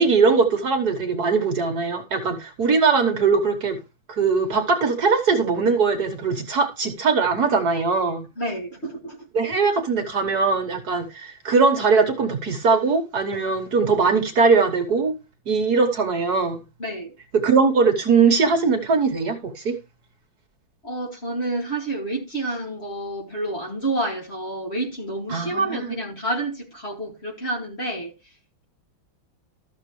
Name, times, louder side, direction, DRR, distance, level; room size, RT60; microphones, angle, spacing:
voice 1, 0.0-3.8 4.1-8.3 9.3-15.1 15.5-16.6 17.3-19.8 25.3-25.9, right 4 dB, 55° right, 1.7 m, -20 dB
voice 2, 8.4-9.3 16.8-17.1 20.8-28.1, right 2 dB, 30° left, 2.5 m, -29 dB
13.5 x 6.7 x 3.2 m
omnidirectional pair, 2.2 m